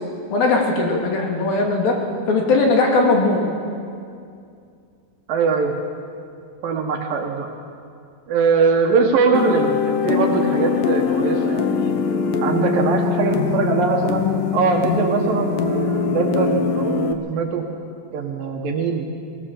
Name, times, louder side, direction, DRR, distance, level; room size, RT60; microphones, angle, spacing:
voice 1, 0.3-2.0 2.3-3.5, left 3 dB, 55° left, 0 dB, 3.8 m, -18 dB
voice 2, 5.3-5.7 6.6-7.5 8.3-12.0 12.4-17.6 18.1-19.1, right 5 dB, 65° right, 2 dB, 2.5 m, -21 dB
sound 1, 9.3-17.1, left 6 dB, 75° left, 1.9 m, -22 dB
20.0 x 18.0 x 7.1 m, 2.4 s
omnidirectional pair, 5.2 m